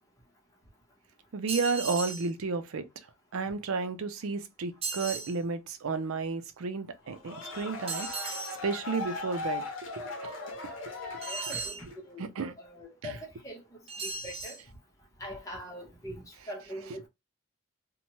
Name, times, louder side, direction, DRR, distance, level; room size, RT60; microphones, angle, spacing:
voice 1, 1.3-2.9 3.3-10.3 10.6-10.8 12.2-12.5 13.0-13.1, right 4 dB, 80° right, 0.5 m, -33 dB
sound 1, 1.5-2.3 4.8-5.3 7.9-8.6 11.2-11.8 13.9-14.6, right 4 dB, 25° right, 0.5 m, -36 dB
sound 2, 7.1-12.1, left 3 dB, 65° left, 0.7 m, -39 dB
voice 2, 11.3-12.3 12.6-13.6 14.0-14.6 15.2-17.1, equal, 15° left, 0.7 m, -42 dB
2.9 x 2.2 x 2.9 m
head